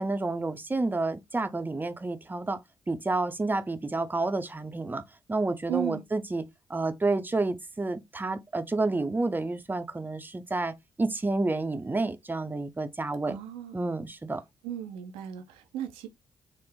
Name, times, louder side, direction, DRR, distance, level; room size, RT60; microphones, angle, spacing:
voice 1, 0.0-2.6 2.9-5.0 5.3-6.4 6.7-13.4 13.7-14.4, right 2 dB, 20° right, 0.6 m, -30 dB
voice 2, 5.7-6.0 13.3-13.8 14.6-16.1, right 11 dB, 90° right, 0.5 m, -35 dB
3.5 x 2.0 x 3.4 m
hypercardioid pair, 45°, 9 cm